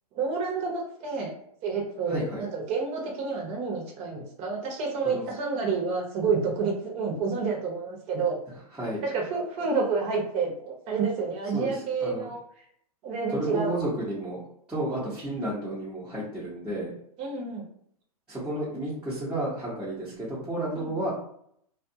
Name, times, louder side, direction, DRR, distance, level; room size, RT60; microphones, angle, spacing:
voice 1, 0.1-1.3 1.6-8.4 9.0-12.4 13.0-13.8 14.9-15.1 17.2-17.6 20.7-20.9, right 4 dB, 35° right, -1 dB, 1.0 m, -29 dB
voice 2, 2.1-2.4 5.0-5.2 8.8-9.0 11.5-12.3 13.3-14.4 14.7-16.9 18.3-21.1, right 1 dB, 5° right, -11 dB, 0.9 m, -32 dB
2.4 x 2.4 x 2.7 m, 0.69 s
hypercardioid pair, 120°, 19 cm